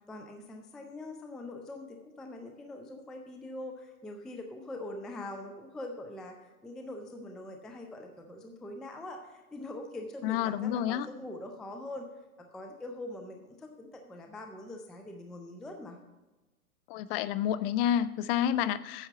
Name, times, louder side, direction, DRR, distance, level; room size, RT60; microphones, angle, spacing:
voice 1, 0.0-12.1 12.4-16.0, left 1 dB, ahead, 4 dB, 0.3 m, -43 dB
voice 2, 10.2-11.1 16.9-19.1, left 10 dB, 40° left, 15 dB, 0.6 m, -29 dB
9.9 x 7.2 x 6.6 m, 1.1 s
hypercardioid pair, 120°, 44 cm